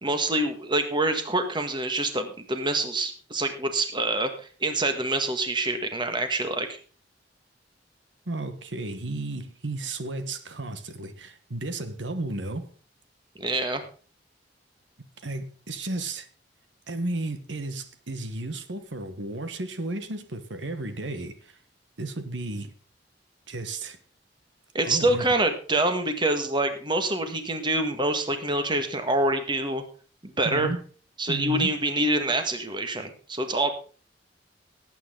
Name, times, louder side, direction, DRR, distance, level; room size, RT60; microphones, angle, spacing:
voice 1, 0.0-4.3 4.6-6.7 13.4-13.8 24.7-29.8 30.2-30.8 31.2-33.7, right 2 dB, 25° right, 1.7 m, -26 dB
voice 2, 8.3-12.7 15.2-16.3 16.9-21.6 22.0-22.7 23.5-24.0 24.8-25.3 30.4-30.8 31.3-31.8, right 2 dB, 85° right, 1.4 m, -33 dB
18.0 x 9.0 x 3.8 m
head